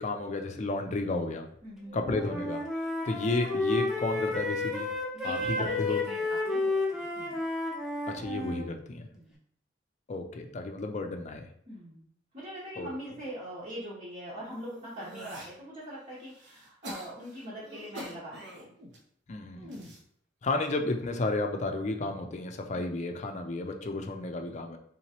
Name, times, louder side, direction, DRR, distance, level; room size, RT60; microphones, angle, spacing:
voice 1, 0.0-1.5 1.9-2.6 3.1-4.9 5.2-6.0 8.1-9.1 10.1-11.5 12.8-12.9 19.3-19.9 20.4-24.8, left 2 dB, 40° left, 5 dB, 0.4 m, -32 dB
voice 2, 1.6-2.0 5.1-5.7 6.0-6.7 7.0-7.4 9.1-9.4 11.7-12.1 12.3-18.6, equal, 40° right, -8 dB, 1.0 m, -42 dB
Wind instrument woodwind instrument, 1.9-8.6, left 2 dB, ahead, 0.7 m, -31 dB
sound 1, 14.5-15.5 16.1-19.0 19.5-20.0 20.8-21.2, right 1 dB, 75° right, 0.8 m, -45 dB
3.7 x 2.9 x 2.8 m, 0.64 s
head